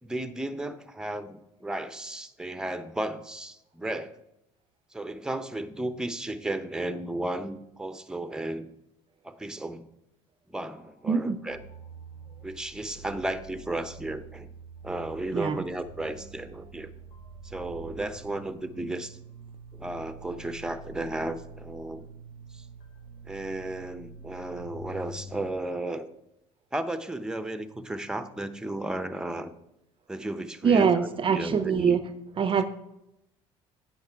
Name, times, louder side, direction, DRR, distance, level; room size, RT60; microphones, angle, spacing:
voice 1, 0.0-4.2 4.9-8.7 9.2-9.9 10.5-11.6 12.4-14.5 14.8-16.9 17.4-19.2 19.7-22.1 22.5-22.7 23.2-26.1 26.7-29.5 30.1-30.9 31.3-32.0, right 1 dB, 5° right, 12 dB, 0.8 m, -34 dB
sound 1, 10.7-25.5, right 3 dB, 80° left, 1.7 m, -46 dB
voice 2, 11.1-11.4 15.3-15.6 30.6-32.0 32.4-32.6, right 6 dB, 35° right, 12 dB, 0.6 m, -23 dB
9.0 x 5.8 x 4.6 m, 0.86 s
supercardioid pair, 75°, 15 cm